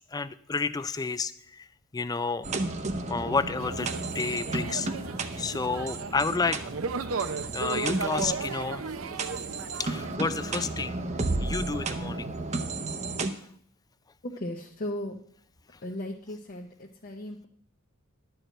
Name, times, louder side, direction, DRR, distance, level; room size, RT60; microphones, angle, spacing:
voice 1, 0.1-1.7 1.9-2.5 3.1-4.9 5.4-6.6 7.5-8.9 9.8-11.0 11.4-12.3, left 4 dB, 15° left, 14 dB, 0.3 m, -30 dB
sound 1, 2.4-13.3, right 2 dB, 35° right, 0.7 m, -33 dB
sound 2, 3.6-10.2, right 5 dB, 70° right, 0.6 m, -35 dB
voice 2, 14.2-15.2 15.8-17.5, left 1 dB, 40° left, 1 dB, 0.7 m, -36 dB
11.0 x 4.7 x 7.8 m, 0.65 s
head